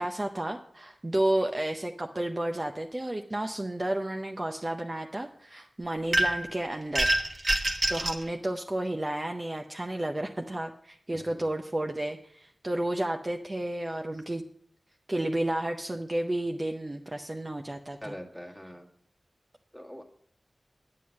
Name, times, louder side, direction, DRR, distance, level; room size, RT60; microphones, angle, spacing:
voice 1, 0.0-7.1 7.9-14.4 15.1-18.1, right 1 dB, 25° right, 4 dB, 0.6 m, -32 dB
sound 1, 6.1-6.5 6.9-8.2, right 1 dB, 40° right, 1.2 m, -26 dB
voice 2, 11.1-11.5 18.0-18.9 19.7-20.0, equal, ahead, 0 dB, 1.6 m, -43 dB
9.5 x 7.6 x 6.3 m, 0.64 s
wide cardioid pair, 100°, 0 cm